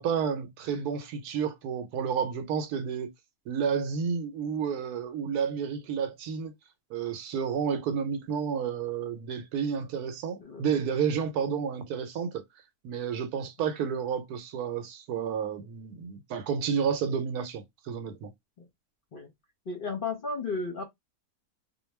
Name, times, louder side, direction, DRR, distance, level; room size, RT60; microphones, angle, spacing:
voice 1, 0.0-3.1 3.5-6.5 6.9-12.4 12.8-18.3, right 7 dB, 80° right, 1.1 m, -31 dB
voice 2, 19.7-20.8, left 4 dB, 50° left, 0.7 m, -33 dB
2.6 x 2.3 x 3.0 m
omnidirectional pair, 1.6 m